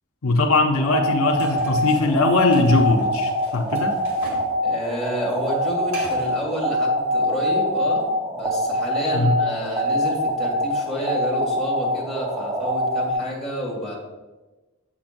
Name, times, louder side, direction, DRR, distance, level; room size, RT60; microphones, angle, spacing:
voice 1, 0.2-3.9 9.1-9.3, left 2 dB, 75° left, 2 dB, 0.7 m, -20 dB
sound 1, 0.7-13.1, equal, 20° right, 1.0 m, -24 dB
sound 2, 1.4-4.5 4.8-6.4, right 1 dB, 70° right, 2.1 m, -40 dB
voice 2, 4.6-14.0, equal, ahead, -5 dB, 2.2 m, -29 dB
7.8 x 7.3 x 2.5 m, 1.1 s
head